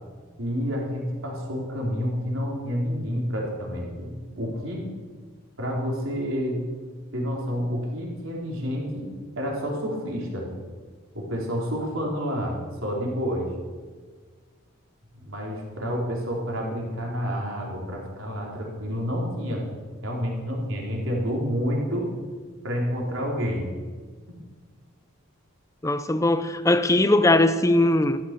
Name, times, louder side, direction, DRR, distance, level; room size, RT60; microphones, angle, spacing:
voice 1, 0.4-4.8 5.6-6.6 7.1-10.5 11.1-12.6 12.8-13.5 15.2-19.6 20.0-22.1 22.6-23.7, equal, 70° right, 4.0 m, -29 dB
voice 2, 25.8-28.2, left 1 dB, 15° left, 0.5 m, -20 dB
13.5 x 12.5 x 6.8 m
head